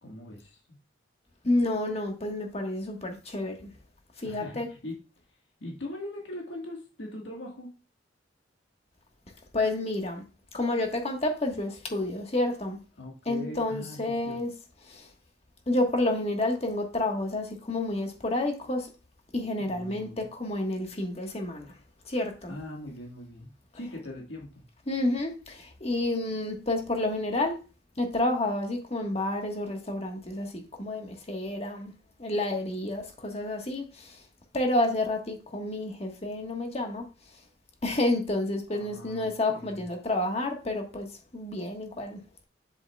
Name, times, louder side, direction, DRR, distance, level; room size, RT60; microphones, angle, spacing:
voice 1, 0.0-0.8 4.2-5.0 5.6-7.7 13.0-14.4 19.6-20.3 22.5-23.5 23.7-24.6 38.7-39.8, left 1 dB, 85° left, 1.6 m, -41 dB
voice 2, 1.4-3.7 4.2-4.7 9.5-10.2 10.5-12.8 13.2-14.5 14.8-15.1 15.7-18.9 19.3-21.7 22.0-22.5 24.9-27.6 28.0-31.9 32.2-34.2 34.5-37.0 37.8-41.1 41.3-42.4, left 2 dB, 35° left, 1.4 m, -30 dB
7.6 x 7.4 x 2.3 m
head